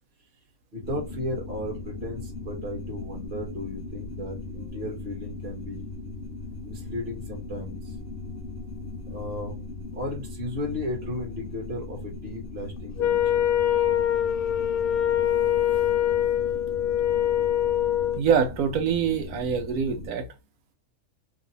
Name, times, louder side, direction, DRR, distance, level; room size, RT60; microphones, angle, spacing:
voice 1, 0.7-5.8 6.6-8.0 9.1-9.5 9.9-13.5, left 1 dB, 45° right, 1.4 m, -35 dB
sound 1, 0.8-20.1, left 3 dB, 50° left, 1.1 m, -38 dB
Wind instrument woodwind instrument, 13.0-18.2, left 11 dB, 80° left, 1.0 m, -24 dB
voice 2, 18.2-20.3, right 7 dB, 80° right, 1.2 m, -24 dB
3.2 x 2.9 x 3.9 m
omnidirectional pair, 1.6 m